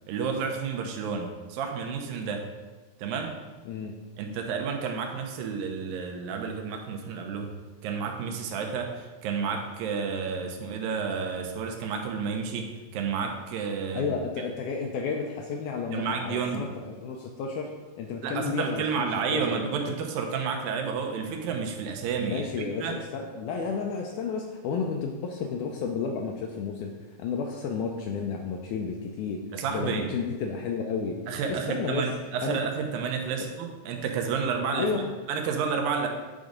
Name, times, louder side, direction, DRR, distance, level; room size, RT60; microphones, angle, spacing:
voice 1, 0.1-2.5 3.0-3.3 4.2-7.5 7.8-14.1 15.9-16.7 18.2-23.0 29.5-30.1 31.3-34.9 35.3-36.1, right 6 dB, 80° right, 3 dB, 2.5 m, -30 dB
voice 2, 3.7-4.0 13.9-19.4 22.2-26.9 27.2-29.4 29.7-31.2 31.5-32.1 32.4-32.6 34.8-35.1, left 5 dB, 85° left, 2 dB, 1.8 m, -32 dB
9.3 x 3.9 x 5.0 m, 1.3 s
omnidirectional pair, 4.1 m